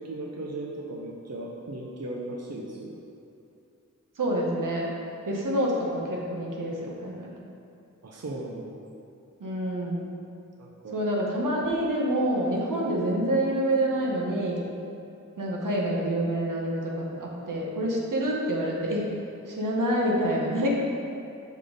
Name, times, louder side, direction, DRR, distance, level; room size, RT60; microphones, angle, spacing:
voice 1, 0.0-3.0 8.0-8.8 10.6-11.0, right 2 dB, 55° right, -1 dB, 0.7 m, -37 dB
voice 2, 4.2-4.9 5.2-7.3 9.4-10.1 10.9-14.6 15.4-19.1 19.5-20.7, right 1 dB, 80° right, -3 dB, 1.0 m, -27 dB
5.2 x 4.1 x 4.9 m, 2.6 s
cardioid pair, 45°, 31 cm